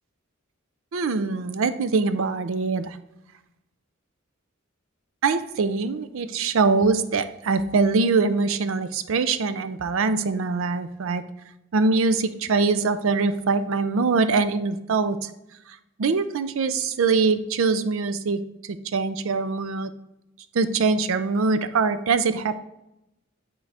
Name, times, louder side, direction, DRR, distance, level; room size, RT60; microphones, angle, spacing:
voice 1, 0.9-3.0 5.2-11.2 11.7-15.3 16.0-18.4 18.9-19.9 20.5-22.5, right 4 dB, 70° right, 11 dB, 0.4 m, -23 dB
8.7 x 3.9 x 3.4 m, 0.88 s
head